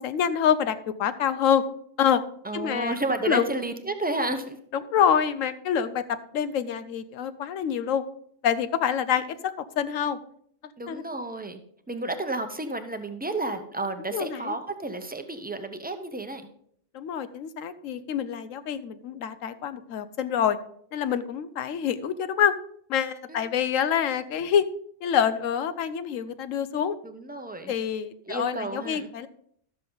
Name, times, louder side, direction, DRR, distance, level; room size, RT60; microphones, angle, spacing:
voice 1, 0.0-1.6 2.0-2.2 2.5-3.0 3.2-3.5 4.7-8.0 8.4-10.2 10.9-11.0 14.1-14.5 16.9-20.6 20.9-22.5 22.9-24.7 25.0-26.9 27.7-29.3, left 8 dB, 80° left, 13 dB, 1.0 m, -26 dB
voice 2, 2.4-4.6 10.8-11.6 11.9-16.4 23.3-23.5 27.0-27.7 28.3-29.1, right 2 dB, 10° right, 8 dB, 0.5 m, -31 dB
12.0 x 7.5 x 3.8 m, 0.66 s
omnidirectional pair, 1.3 m